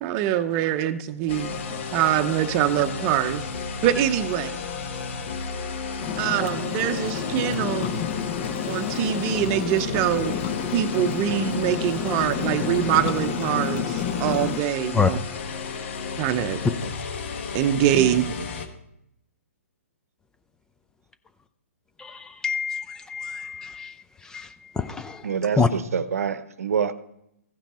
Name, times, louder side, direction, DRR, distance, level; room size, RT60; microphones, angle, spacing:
voice 1, 0.0-3.4 3.8-4.6 6.2-8.0 8.7-10.4 10.7-15.2 16.2-16.6 17.5-18.3, right 11 dB, 30° right, 0.7 m, -24 dB
sound 1, 1.3-18.7, left 5 dB, 55° left, 1.3 m, -33 dB
sound 2, 6.0-14.6, left 8 dB, 35° left, 0.9 m, -30 dB
voice 2, 17.9-18.5 25.2-26.9, right 7 dB, 75° right, 0.8 m, -27 dB
voice 3, 22.0-23.9 24.3-24.5 24.8-25.2 25.6-25.7, left 5 dB, 10° left, 0.4 m, -26 dB
15.0 x 5.9 x 4.3 m
hypercardioid pair, 140°, 8 cm